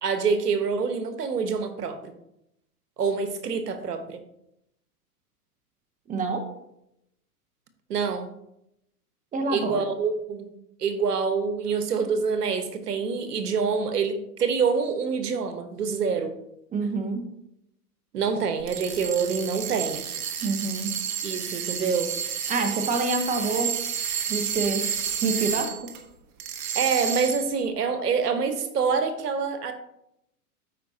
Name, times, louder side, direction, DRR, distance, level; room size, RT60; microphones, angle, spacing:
voice 1, 0.0-2.0 3.0-4.2 7.9-8.3 9.5-10.5 10.8-16.3 18.1-20.0 21.2-22.1 26.7-29.7, right 5 dB, 85° right, 9 dB, 1.2 m, -26 dB
voice 2, 6.1-6.5 9.3-9.8 16.7-17.2 20.4-20.9 22.5-23.8 24.3-24.9 25.2-25.8, right 3 dB, 15° right, 6 dB, 1.0 m, -27 dB
sound 1, 18.6-26.0 26.4-27.6, right 8 dB, 40° right, 1.3 m, -31 dB
13.0 x 5.2 x 2.8 m, 0.82 s
hypercardioid pair, 120°, 46 cm